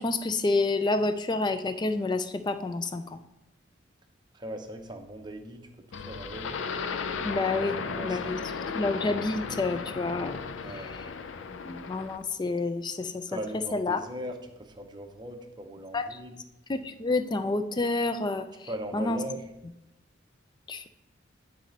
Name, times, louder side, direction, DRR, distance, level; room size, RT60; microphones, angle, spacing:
voice 1, 0.0-3.2 7.2-7.8 8.0-8.4 8.7-10.4 10.8-10.9 11.6-13.2 13.7-14.0 15.9-16.2 16.7-18.5 18.9-19.2 20.7-20.9, left 3 dB, 25° left, 10 dB, 0.4 m, -28 dB
voice 2, 4.3-6.5 7.8-8.5 10.6-10.9 13.3-16.4 18.7-19.5, equal, 25° right, 4 dB, 0.7 m, -39 dB
sound 1, 5.9-12.2, left 5 dB, 80° left, 0.5 m, -35 dB
9.1 x 4.1 x 3.9 m, 0.90 s
head